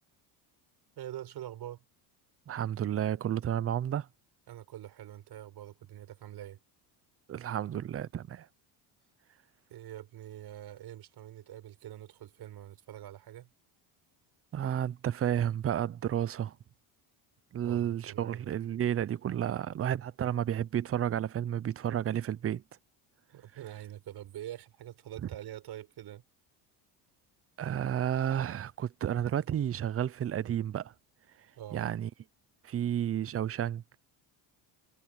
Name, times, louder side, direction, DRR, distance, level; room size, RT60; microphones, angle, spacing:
voice 1, 1.0-1.8 4.5-6.6 9.7-13.5 17.6-18.5 23.3-26.2 31.6-31.9, right 12 dB, 55° right, 5.7 m, -45 dB
voice 2, 2.5-4.1 7.3-8.5 14.5-16.6 17.5-22.6 27.6-30.9 31.7-32.1 32.6-33.8, right 10 dB, 30° right, 0.7 m, -31 dB
cardioid pair, 120°, 46 cm